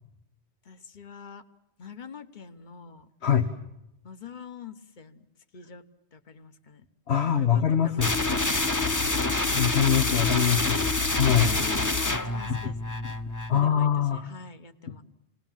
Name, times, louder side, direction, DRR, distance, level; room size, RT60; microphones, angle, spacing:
voice 1, 0.6-1.4 1.8-3.1 4.0-5.2 5.5-5.8 6.1-6.8 7.2-9.4 11.4-13.0 13.5-15.0, left 5 dB, 50° left, 9 dB, 1.3 m, -45 dB
voice 2, 7.1-8.1 9.5-11.6 12.5-12.7 13.0-13.1 13.5-14.3 14.9-15.0, left 8 dB, 85° left, 7 dB, 1.5 m, -24 dB
sound 1, 8.0-13.6, left 2 dB, 20° left, 0.8 m, -27 dB
28.5 x 20.0 x 7.4 m, 0.88 s
omnidirectional pair, 1.1 m